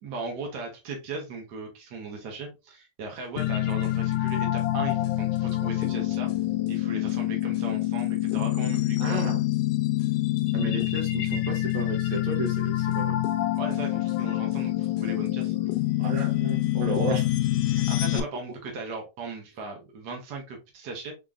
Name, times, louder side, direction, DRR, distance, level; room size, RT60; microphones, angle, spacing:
voice 1, 0.0-6.3 6.7-9.3 13.5-15.5 17.6-21.1, right 3 dB, 85° right, 1 dB, 0.9 m, -38 dB
sound 1, 3.4-18.2, left 15 dB, 85° left, 2.1 m, -26 dB
voice 2, 9.0-9.4 10.5-13.2 16.0-17.2, right 4 dB, 60° right, 2 dB, 1.3 m, -32 dB
4.6 x 3.8 x 2.4 m, 0.26 s
omnidirectional pair, 3.5 m